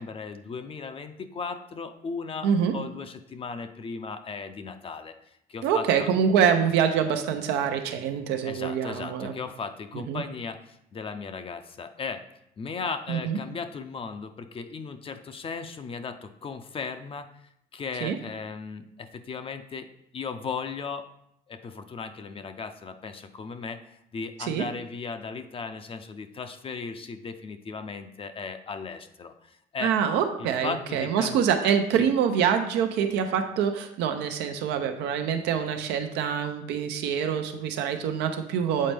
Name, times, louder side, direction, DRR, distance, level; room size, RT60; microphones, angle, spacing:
voice 1, 0.0-6.1 6.4-6.5 8.4-12.2 12.6-17.4 17.7-19.9 20.1-21.1 21.5-29.9 30.4-31.4, left 5 dB, 35° left, 8 dB, 0.5 m, -36 dB
voice 2, 2.4-2.8 5.6-9.3 9.9-10.2 13.1-13.4 18.0-18.2 24.4-24.6 29.8-38.9, right 7 dB, 90° right, 6 dB, 0.7 m, -25 dB
7.5 x 4.2 x 3.4 m, 0.76 s
cardioid pair, 110°, 17 cm